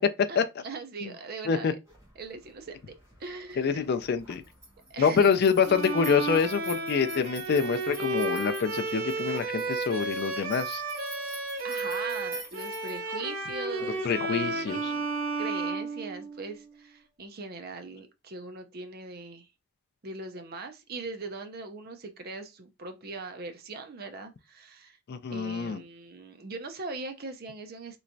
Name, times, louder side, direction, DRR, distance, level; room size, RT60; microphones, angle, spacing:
voice 1, 0.3-1.8 2.2-2.9 3.2-3.9 4.9-5.4 11.6-15.1 15.4-19.5 20.0-25.0 25.3-28.0, right 3 dB, 45° right, 0.6 m, -40 dB
sound 1, 1.9-13.0, right 2 dB, 15° right, 1.4 m, -48 dB
voice 2, 3.6-4.4 5.0-10.8 14.0-14.9 25.1-25.8, left 6 dB, 45° left, 0.3 m, -26 dB
Bowed string instrument, 5.6-16.6, right 3 dB, 75° right, 0.8 m, -32 dB
3.3 x 3.0 x 2.6 m
head